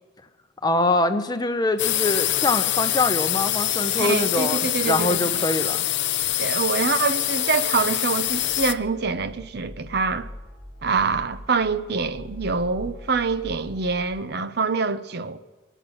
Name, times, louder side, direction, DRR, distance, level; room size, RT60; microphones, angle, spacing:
voice 1, 0.6-5.8, left 2 dB, 20° left, 0.8 m, -24 dB
sound 1, 1.8-8.7, left 13 dB, 65° left, 0.6 m, -24 dB
voice 2, 4.0-5.4 6.4-10.3 10.8-15.4, right 4 dB, 55° right, 0.7 m, -25 dB
sound 2, 8.3-14.2, left 1 dB, 25° right, 6.7 m, -42 dB
23.5 x 9.0 x 6.2 m
head